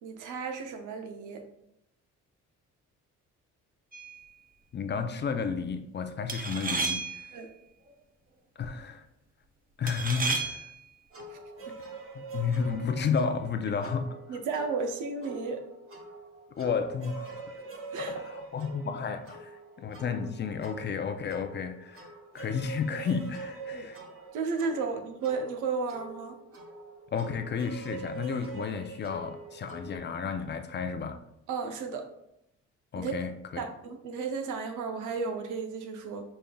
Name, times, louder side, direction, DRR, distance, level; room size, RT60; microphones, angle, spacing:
voice 1, 0.0-1.4 7.3-7.5 14.3-15.6 17.9-18.1 23.7-23.9 24.3-26.4 31.5-32.1 33.0-33.1 33.6-36.2, right 4 dB, 90° right, 6 dB, 0.7 m, -33 dB
sound 1, 3.9-4.2 6.3-7.4 9.9-10.8, right 4 dB, 30° right, 0.6 m, -32 dB
voice 2, 4.7-7.3 8.6-9.0 9.8-10.7 12.1-14.4 16.6-17.4 18.0-24.0 27.1-31.2 32.9-33.6, left 6 dB, 35° left, 7 dB, 0.5 m, -32 dB
sound 2, 11.1-30.0, right 3 dB, 45° right, 1.1 m, -45 dB
5.3 x 3.4 x 2.2 m, 0.80 s
cardioid pair, 90°, 30 cm